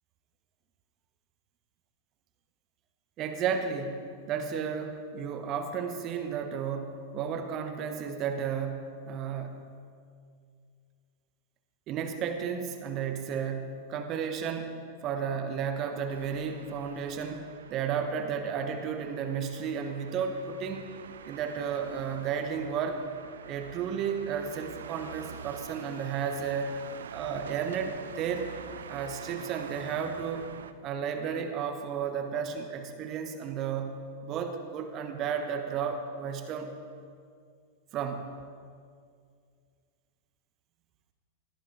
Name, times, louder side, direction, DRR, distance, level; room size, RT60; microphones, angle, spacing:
voice 1, 3.2-9.7 11.9-20.8 21.2-23.0 23.4-26.8 27.1-28.5 28.9-30.5 30.8-36.7 37.9-38.3, right 7 dB, 35° right, 6 dB, 1.3 m, -33 dB
sound 1, 16.1-30.7, right 7 dB, 65° right, 0.7 m, -46 dB
21.5 x 14.0 x 3.6 m, 2.2 s
figure-of-eight pair, 90°, 0 cm